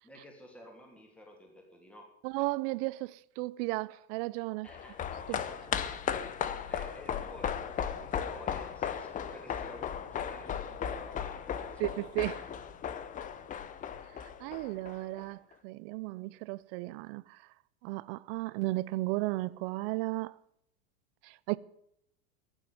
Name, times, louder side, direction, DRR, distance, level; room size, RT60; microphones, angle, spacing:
voice 1, 0.0-2.1 4.6-5.0 5.3-5.9 6.7-11.9, left 1 dB, 5° left, 2.9 m, -52 dB
voice 2, 2.2-4.7 5.3-5.4 11.8-12.4 14.4-17.4 17.8-20.3 21.2-21.6, right 21 dB, 45° right, 0.5 m, -34 dB
sound 1, 4.7-15.2 15.5-15.6, left 8 dB, 20° left, 0.7 m, -36 dB
15.5 x 7.3 x 9.5 m
supercardioid pair, 140°, 42 cm